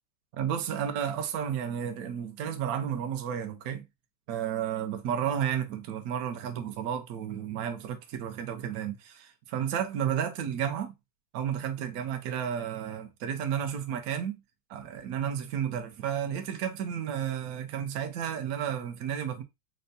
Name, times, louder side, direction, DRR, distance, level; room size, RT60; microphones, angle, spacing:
voice 1, 0.3-3.8 4.3-10.9 11.3-14.4 14.7-19.4, right 9 dB, 65° right, 1.0 m, -32 dB
4.3 x 2.2 x 2.6 m
omnidirectional pair, 1.9 m